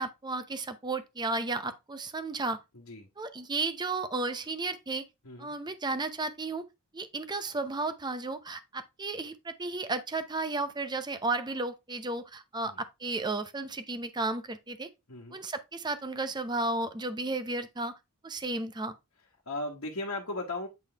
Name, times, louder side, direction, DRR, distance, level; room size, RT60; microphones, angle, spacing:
voice 1, 0.0-2.6 3.2-5.0 5.4-6.6 6.9-14.9 15.3-17.9 18.2-18.9, right 3 dB, 20° right, 0.6 m, -33 dB
voice 2, 2.7-3.1 5.2-5.5 12.6-12.8 15.1-15.4 19.5-20.7, left 2 dB, 70° left, 1.3 m, -36 dB
8.2 x 3.8 x 3.3 m
head